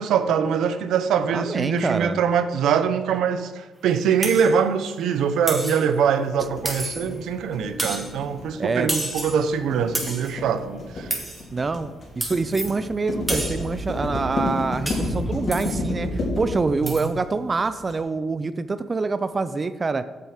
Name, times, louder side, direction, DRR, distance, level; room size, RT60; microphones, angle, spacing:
voice 1, 0.0-11.1 16.8-16.9, right 7 dB, 80° right, 10 dB, 0.7 m, -23 dB
voice 2, 1.3-2.2 8.6-8.9 11.5-20.0, right 3 dB, 30° right, 12 dB, 0.4 m, -26 dB
sound 1, 4.2-4.5 5.5-5.9 6.7-7.2 7.8-8.1 8.9-9.4 9.9-10.3 11.1-11.4 12.2-12.8 13.3-13.7 14.9-15.2 15.5-15.8 16.9-17.1, right 1 dB, 10° right, 2.1 m, -30 dB
sound 2, 6.4-17.9, left 2 dB, 55° left, 3.5 m, -30 dB
8.5 x 6.9 x 5.1 m, 1.2 s
cardioid pair, 90°, 0 cm